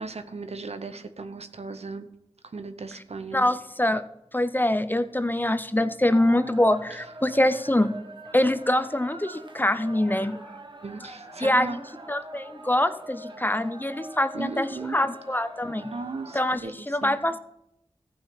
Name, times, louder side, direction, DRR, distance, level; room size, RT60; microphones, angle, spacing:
voice 1, 0.0-2.1 2.4-3.5 10.8-11.8 14.3-15.0 15.8-17.2, right 3 dB, 70° right, 10 dB, 0.9 m, -36 dB
voice 2, 3.3-4.0 4.3-8.0 8.3-10.4 11.4-15.9 16.3-16.6 16.9-17.4, left 1 dB, 15° left, 12 dB, 0.6 m, -24 dB
sound 1, 6.1-16.6, right 1 dB, 45° right, 1.2 m, -44 dB
14.5 x 5.7 x 5.8 m, 0.81 s
wide cardioid pair, 45°, 11 cm